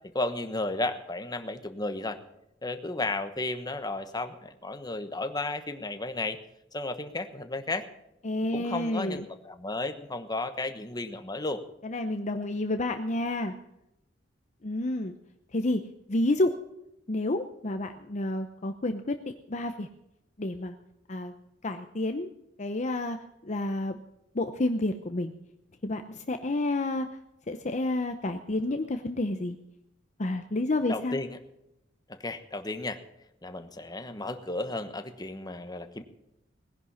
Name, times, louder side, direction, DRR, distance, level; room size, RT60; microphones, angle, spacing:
voice 1, 0.1-2.2 2.6-6.4 6.7-7.8 8.5-11.6 30.9-31.4 32.1-33.0 33.4-36.0, left 2 dB, 20° left, 8 dB, 1.2 m, -33 dB
voice 2, 8.2-9.2 11.8-13.5 14.6-15.1 15.5-15.8 16.1-16.5 17.1-19.2 19.5-19.9 20.4-20.7 21.1-21.3 21.6-22.3 22.6-23.2 23.4-24.0 24.3-25.3 25.8-27.1 27.5-29.6 30.2-31.2, left 2 dB, 40° left, 7 dB, 0.8 m, -29 dB
19.0 x 11.0 x 5.7 m, 0.84 s
head